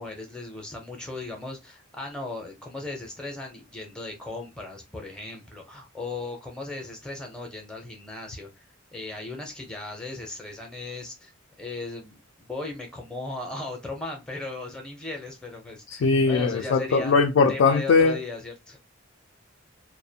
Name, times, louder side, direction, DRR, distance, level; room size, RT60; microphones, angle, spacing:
voice 1, 0.0-8.7 8.9-17.1 17.5-18.8, left 2 dB, 5° left, 0.6 m, -37 dB
voice 2, 15.9-18.2, left 4 dB, 60° left, 0.3 m, -20 dB
2.4 x 2.1 x 2.7 m
head